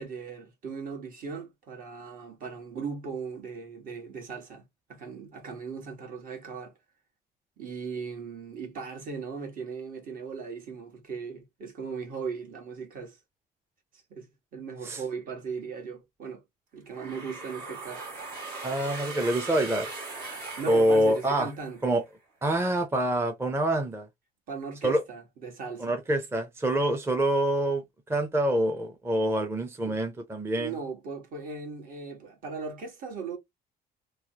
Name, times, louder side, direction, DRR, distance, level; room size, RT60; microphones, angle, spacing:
voice 1, 0.0-4.6 4.9-6.7 7.6-13.2 14.1-16.4 16.7-18.1 20.6-22.0 24.5-26.0 29.8-30.0 30.5-33.4, right 5 dB, 55° right, 1.5 m, -38 dB
sound 1, 16.9-21.8, right 3 dB, 70° right, 1.9 m, -39 dB
voice 2, 18.6-19.9 20.7-21.5 21.8-22.0 22.4-24.1 24.8-25.0 25.8-27.8 28.1-30.7, right 1 dB, 15° right, 0.6 m, -26 dB
3.1 x 2.1 x 2.8 m
cardioid pair, 110°, 17 cm